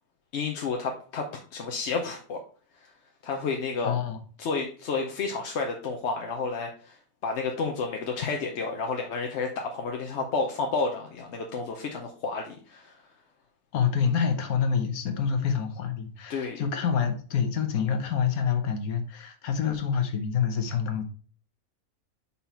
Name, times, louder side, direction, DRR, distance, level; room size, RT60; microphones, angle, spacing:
voice 1, 0.3-2.4 2.8-2.9 3.2-4.0 4.4-13.0 16.3-16.6, left 4 dB, 55° left, 2 dB, 0.9 m, -31 dB
voice 2, 3.8-4.2 13.7-21.0, left 7 dB, 75° left, 7 dB, 1.4 m, -27 dB
5.5 x 4.3 x 4.3 m, 0.42 s
omnidirectional pair, 1.6 m